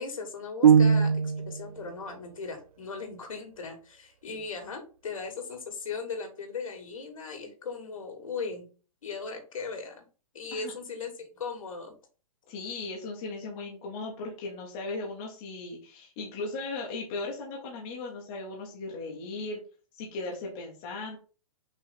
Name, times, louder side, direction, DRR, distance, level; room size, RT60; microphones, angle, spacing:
voice 1, 0.0-8.7 9.0-10.1 10.3-12.0, left 4 dB, 65° left, 4 dB, 2.3 m, -38 dB
sound 1, 0.6-1.7, right 7 dB, 80° right, 0.5 m, -20 dB
voice 2, 12.5-19.6 19.9-21.2, left 3 dB, 5° left, -2 dB, 0.3 m, -37 dB
5.6 x 3.3 x 5.5 m, 0.36 s
hypercardioid pair, 180°, 19 cm